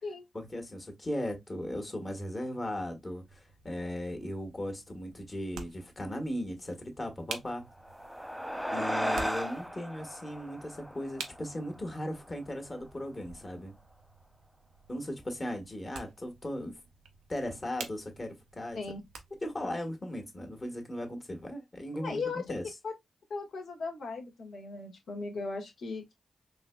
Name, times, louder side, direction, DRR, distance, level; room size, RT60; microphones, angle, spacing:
voice 1, 0.3-7.7 8.7-13.8 14.9-16.7 17.3-18.8 19.4-22.6, left 1 dB, 35° left, 1.4 m, -37 dB
sound 1, 3.3-19.6, right 5 dB, 90° right, 0.5 m, -50 dB
sound 2, 7.7-12.5, equal, 5° right, 0.4 m, -36 dB
voice 2, 21.9-22.4 22.8-22.9 23.3-26.1, left 4 dB, 75° left, 1.3 m, -37 dB
3.9 x 2.8 x 2.2 m
supercardioid pair, 45°, 0 cm